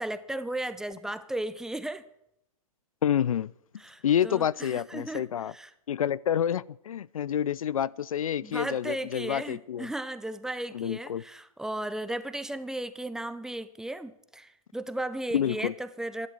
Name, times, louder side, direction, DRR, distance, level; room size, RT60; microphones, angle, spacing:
voice 1, 0.0-2.0 3.8-5.7 8.4-16.3, right 1 dB, 5° right, 13 dB, 0.6 m, -35 dB
voice 2, 3.0-3.5 4.0-5.5 5.9-9.9 10.7-11.2 15.3-15.7, left 9 dB, 70° left, 22 dB, 0.4 m, -28 dB
13.0 x 12.0 x 7.8 m, 0.80 s
figure-of-eight pair, 120°, 19 cm